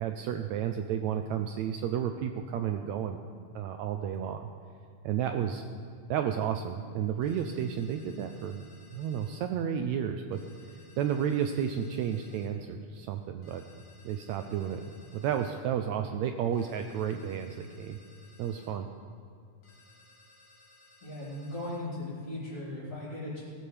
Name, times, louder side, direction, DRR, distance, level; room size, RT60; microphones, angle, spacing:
voice 1, 0.0-3.2 3.6-4.5 5.0-5.6 6.1-8.6 8.9-10.4 11.0-13.6 14.1-14.9 15.1-18.0 18.4-18.9, right 8 dB, 80° right, 6 dB, 1.7 m, -32 dB
sound 1, 7.2-9.4 10.3-12.5 13.4-15.6 16.5-18.7 19.6-21.8, left 3 dB, 85° left, 4.1 m, -60 dB
voice 2, 21.0-23.4, left 1 dB, 45° left, -13 dB, 4.5 m, -38 dB
18.5 x 13.0 x 3.4 m, 2.4 s
omnidirectional pair, 3.7 m